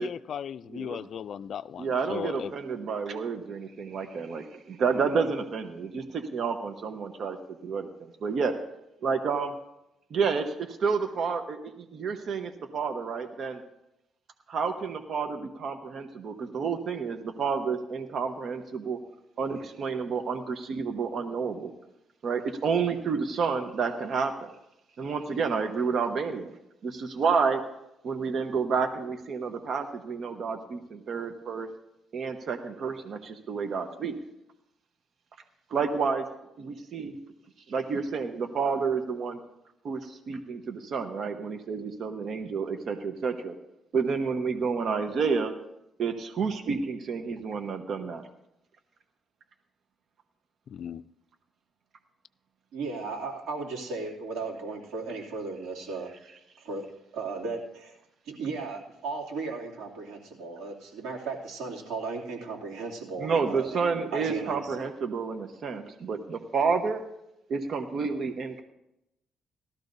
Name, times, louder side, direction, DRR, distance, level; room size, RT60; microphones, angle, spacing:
voice 1, 0.0-2.5 50.7-51.0, left 8 dB, 60° left, 15 dB, 0.4 m, -36 dB
voice 2, 0.7-1.0 1.8-7.4 7.6-8.5 9.0-9.5 10.1-13.6 14.5-19.0 19.4-21.7 22.2-24.3 25.0-26.5 26.8-27.6 28.0-31.7 32.1-34.1 35.7-36.2 36.6-37.2 37.7-39.4 39.8-43.5 43.9-45.5 46.0-48.2 63.2-67.0 67.5-68.6, right 5 dB, 60° right, 5 dB, 1.1 m, -30 dB
voice 3, 52.7-56.1 56.6-57.9 58.3-64.7, right 4 dB, 85° right, -1 dB, 2.6 m, -36 dB
18.5 x 13.0 x 2.7 m, 0.86 s
cardioid pair, 90°, 0 cm